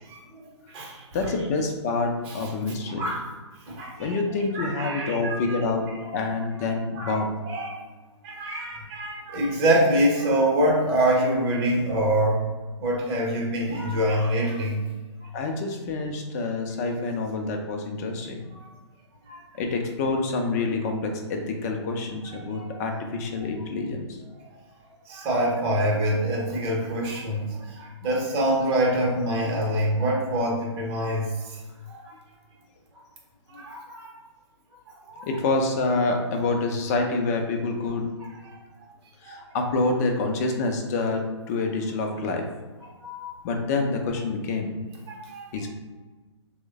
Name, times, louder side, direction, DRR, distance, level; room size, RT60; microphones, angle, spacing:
voice 1, 0.1-0.4 0.7-1.1 2.3-2.5 3.0-3.3 3.7-4.1 4.5-5.6 6.0-6.1 6.9-7.2 7.4-7.8 8.2-12.4 12.8-14.8 15.2-15.3 18.6-18.7 19.2-19.4 22.3-22.7 24.4-24.5 25.1-31.6 31.9-32.1 33.5-34.1 34.9-35.3 38.5-38.6 39.3-39.5 43.0-43.4 45.1-45.6, right 1 dB, 30° right, -3 dB, 0.9 m, -26 dB
voice 2, 1.1-3.1 4.0-5.9 6.1-7.4 15.3-18.4 19.6-24.0 33.5-33.6 35.2-38.1 39.2-41.2 41.5-42.4 43.4-44.8 45.5-45.7, left 3 dB, 35° left, 3 dB, 0.5 m, -27 dB
3.0 x 2.1 x 3.5 m, 1.3 s
figure-of-eight pair, 130°, 16 cm